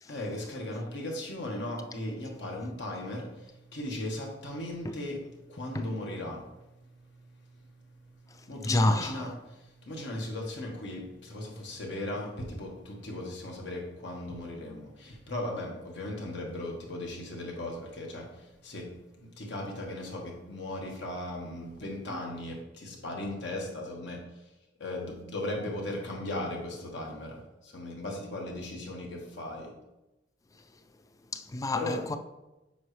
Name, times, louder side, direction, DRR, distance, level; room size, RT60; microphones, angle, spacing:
voice 1, 0.1-18.9 19.2-24.2 24.8-29.7 31.7-32.0, left 1 dB, 75° left, 1.5 m, -37 dB
voice 2, 8.6-9.3 30.5-30.6 31.3-32.2, left 2 dB, 20° left, 0.3 m, -28 dB
7.2 x 5.4 x 3.3 m
head